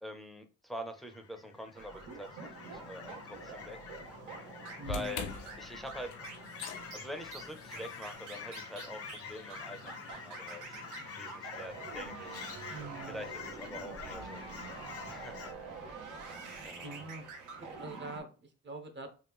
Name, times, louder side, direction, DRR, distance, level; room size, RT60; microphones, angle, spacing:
voice 1, 0.0-3.8 4.8-5.3 5.6-6.1 6.9-12.5 13.1-14.6 15.1-15.6 16.3-17.1, equal, ahead, 6 dB, 0.5 m, -45 dB
Fowl / Chirp tweet, 0.8-15.5, left 6 dB, 50° left, 0.6 m, -47 dB
sound 1, 1.8-18.2, right 4 dB, 80° right, 0.9 m, -47 dB
sound 2, 4.8-11.1, left 4 dB, 90° left, 0.6 m, -46 dB
voice 2, 4.8-5.2 12.7-13.3 16.8-17.2 17.6-19.1, right 2 dB, 35° right, 6 dB, 0.8 m, -44 dB
3.2 x 2.4 x 3.4 m, 0.36 s
cardioid pair, 90°, 30 cm